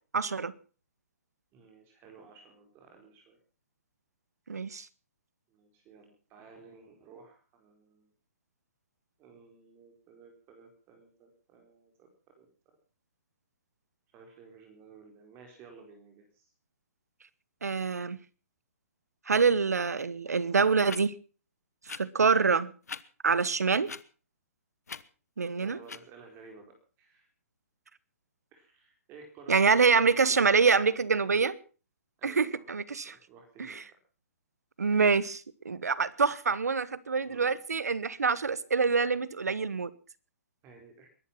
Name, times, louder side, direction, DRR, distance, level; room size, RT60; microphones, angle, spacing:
voice 1, 0.1-0.5 4.5-4.9 17.6-18.2 19.3-21.1 21.9-22.7 23.2-23.9 25.4-25.8 29.5-31.6 32.2-33.1 33.6-33.8 34.8-39.9, right 5 dB, 85° right, 1.2 m, -26 dB
voice 2, 1.5-3.4 5.5-8.1 9.2-12.8 14.1-16.5 25.5-27.3 28.5-30.2 30.7-30.8 32.2-32.7 33.0-34.0 37.2-37.5 40.6-41.1, right 5 dB, 25° right, 4.5 m, -54 dB
sound 1, 20.0-20.1 20.9-21.0 21.8-22.0 22.8-23.0 23.8-24.0 24.9-25.0 25.8-26.0, left 5 dB, 85° left, 1.2 m, -40 dB
22.0 x 11.5 x 5.8 m
hypercardioid pair, 135°, 8 cm